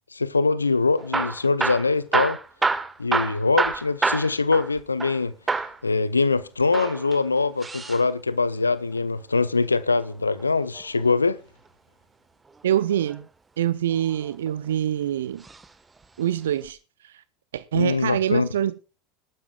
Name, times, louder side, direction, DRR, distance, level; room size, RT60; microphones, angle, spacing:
voice 1, 0.1-2.4 3.0-5.3 5.8-11.4 17.7-18.5, left 4 dB, 85° left, 0.5 m, -23 dB
Hammer / Drill, 1.0-5.2 5.5-5.8 6.6-8.0 9.8-11.0 12.7-13.2 13.9-14.7 15.4-15.7 16.0-16.1 16.7-16.8, right 4 dB, 15° right, 1.3 m, -28 dB
voice 2, 12.6-13.3 13.6-15.4 16.2-16.8 17.0-17.1 17.5-18.7, right 11 dB, 70° right, 0.5 m, -25 dB
18.5 x 12.0 x 2.3 m
figure-of-eight pair, 75°, 0 cm